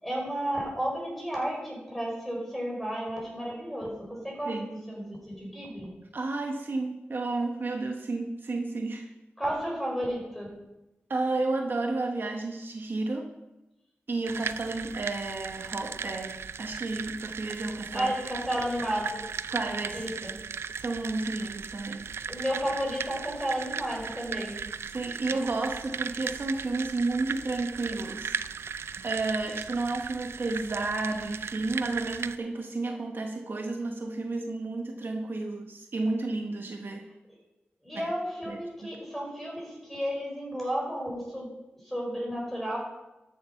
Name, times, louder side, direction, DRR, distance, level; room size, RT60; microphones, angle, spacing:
voice 1, 0.0-5.9 9.4-10.5 17.9-19.2 19.9-20.4 22.3-24.6 37.8-41.5 41.8-42.8, equal, 5° left, -2 dB, 5.2 m, -32 dB
voice 2, 4.5-4.8 6.1-9.1 11.1-13.3 14.1-18.1 19.5-20.1 20.8-22.1 24.9-28.4 29.0-37.1 37.9-38.1 38.5-38.9, right 3 dB, 55° right, 3 dB, 1.0 m, -32 dB
sound 1, 14.3-32.4, right 6 dB, 85° right, 0.4 m, -37 dB
13.0 x 7.6 x 5.7 m, 0.99 s
wide cardioid pair, 85°, 4 cm